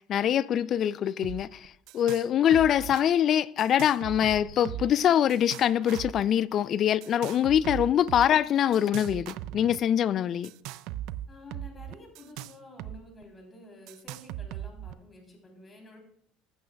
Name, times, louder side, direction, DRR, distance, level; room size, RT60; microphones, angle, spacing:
voice 1, 0.1-10.5, left 10 dB, 45° left, 0.3 m, -24 dB
sound 1, 1.2-1.4 1.6-2.3 2.5-3.0 3.6-5.0 5.3-6.2 7.0-8.3 8.7-9.8 10.4-13.0 13.2-13.3 13.9-14.9, right 13 dB, 70° right, 0.3 m, -39 dB
voice 2, 11.3-16.0, left 2 dB, 25° left, 3.4 m, -50 dB
15.0 x 8.5 x 2.3 m
supercardioid pair, 105°, 0 cm